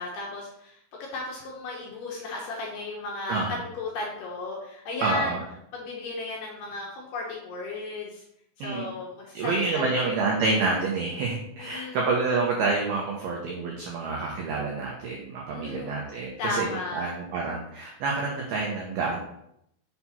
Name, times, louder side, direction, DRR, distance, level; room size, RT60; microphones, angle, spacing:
voice 1, 0.0-5.4 5.7-8.2 8.6-10.3 11.6-12.1 15.5-16.0 16.4-17.2, left 2 dB, 70° left, -2 dB, 2.5 m, -35 dB
voice 2, 5.0-5.4 8.6-8.9 9.3-16.7 16.9-19.2, right 3 dB, 85° right, -1 dB, 2.2 m, -28 dB
7.3 x 4.6 x 5.6 m, 0.77 s
omnidirectional pair, 5.9 m